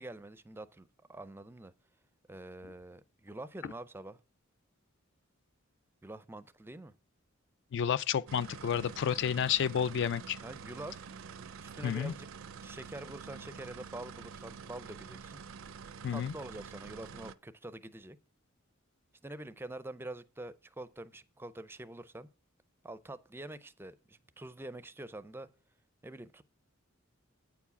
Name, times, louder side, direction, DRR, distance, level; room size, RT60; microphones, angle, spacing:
voice 1, 0.0-1.7 2.3-4.2 6.0-6.9 10.4-11.1 11.6-12.3 12.6-15.4 16.1-18.2 19.2-22.3 22.8-25.5 26.0-26.4, right 1 dB, 10° right, 0.4 m, -46 dB
voice 2, 7.7-10.4 11.8-12.1 16.0-16.3, left 8 dB, 60° left, 0.3 m, -30 dB
sound 1, 8.3-17.4, right 6 dB, 70° right, 0.4 m, -47 dB
8.7 x 4.8 x 6.9 m
head